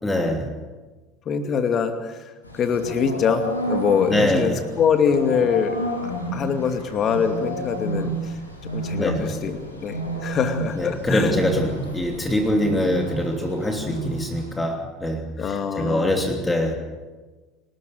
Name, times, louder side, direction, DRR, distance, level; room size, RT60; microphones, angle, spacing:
voice 1, 0.0-0.6 4.1-4.7 9.0-9.5 10.8-16.7, left 1 dB, 10° left, 3 dB, 3.0 m, -24 dB
voice 2, 1.3-5.8 6.3-11.4 15.4-16.1, left 6 dB, 35° left, 7 dB, 2.5 m, -24 dB
sound 1, 2.4-14.5, right 1 dB, 85° left, 3.6 m, -31 dB
26.0 x 13.0 x 8.9 m, 1.3 s
figure-of-eight pair, 70°, 0 cm